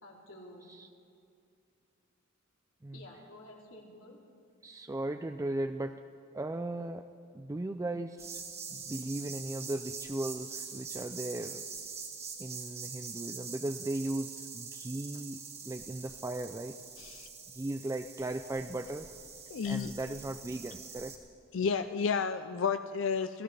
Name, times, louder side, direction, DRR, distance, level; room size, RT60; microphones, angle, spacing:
voice 1, 0.0-0.7 2.9-4.2, left 1 dB, 85° left, -2 dB, 2.8 m, -51 dB
voice 2, 4.6-6.0 6.3-7.0 7.3-8.4 8.7-11.6 12.4-15.4 15.7-16.8 17.6-19.1 19.7-21.2, right 2 dB, 15° right, 8 dB, 0.3 m, -37 dB
sound 1, 8.2-21.2, right 5 dB, 30° right, 1.6 m, -44 dB
voice 3, 17.0-17.3 19.5-19.9 21.5-23.4, left 6 dB, 65° left, 10 dB, 0.4 m, -31 dB
27.0 x 15.5 x 3.4 m, 2.4 s
head